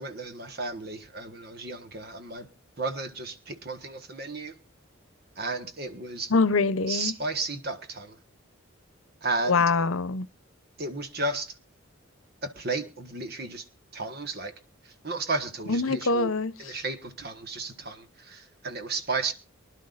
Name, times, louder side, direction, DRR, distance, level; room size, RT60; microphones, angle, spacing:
voice 1, 0.0-2.5 2.8-4.5 5.4-6.3 6.9-8.2 9.2-9.6 10.8-11.5 12.4-13.7 13.9-14.5 15.0-16.3 16.6-19.3, right 3 dB, 50° right, 1.4 m, -33 dB
voice 2, 6.3-7.1 9.5-10.3 15.7-16.8, left 4 dB, 75° left, 0.8 m, -24 dB
24.0 x 11.5 x 2.5 m
head